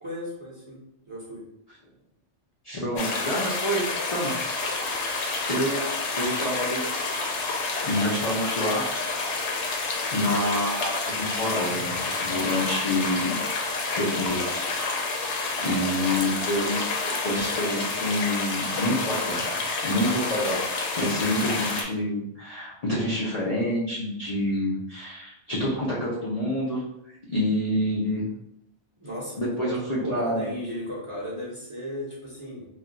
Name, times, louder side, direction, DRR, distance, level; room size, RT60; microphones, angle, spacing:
voice 1, 0.0-0.8 1.1-1.4 15.6-15.8 29.0-32.7, equal, 30° right, -7 dB, 0.7 m, -36 dB
voice 2, 2.6-3.8 4.1-4.3 4.7-5.0 5.4-6.8 7.2-7.3 7.8-8.8 9.1-9.2 10.1-13.4 14.0-14.7 15.6-16.9 17.2-19.4 19.8-20.6 21.0-26.8 27.3-28.3 29.4-30.5, left 1 dB, 45° left, -7 dB, 0.5 m, -27 dB
sound 1, 3.0-21.8, left 3 dB, 70° left, 0.9 m, -29 dB
2.4 x 2.2 x 3.8 m, 0.80 s
omnidirectional pair, 1.3 m